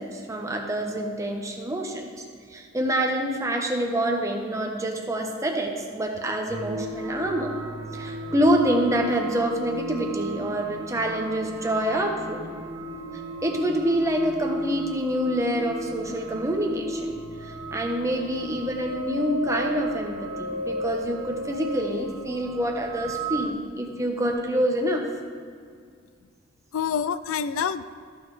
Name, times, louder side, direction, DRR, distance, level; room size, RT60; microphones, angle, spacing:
voice 1, 0.0-2.1 2.5-7.5 7.9-12.4 13.4-25.0, right 1 dB, 15° right, 1 dB, 0.9 m, -26 dB
sound 1, 6.5-23.5, right 1 dB, 70° right, 0.9 m, -34 dB
voice 2, 26.7-27.8, left 7 dB, 85° left, 14 dB, 0.4 m, -28 dB
13.5 x 6.1 x 3.3 m, 2.1 s
head